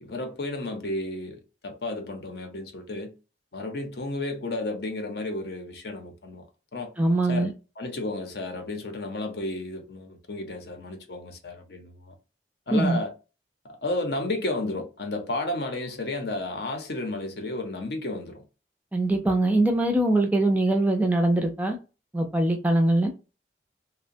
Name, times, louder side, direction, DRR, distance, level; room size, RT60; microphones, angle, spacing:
voice 1, 0.0-3.1 3.5-6.5 6.7-6.9 7.3-12.1 12.7-13.1 13.6-18.4, left 2 dB, 60° left, 0.6 m, -32 dB
voice 2, 7.0-7.5 12.7-13.0 18.9-21.8 22.1-23.1, right 2 dB, 10° right, 0.4 m, -22 dB
2.8 x 2.1 x 2.6 m
head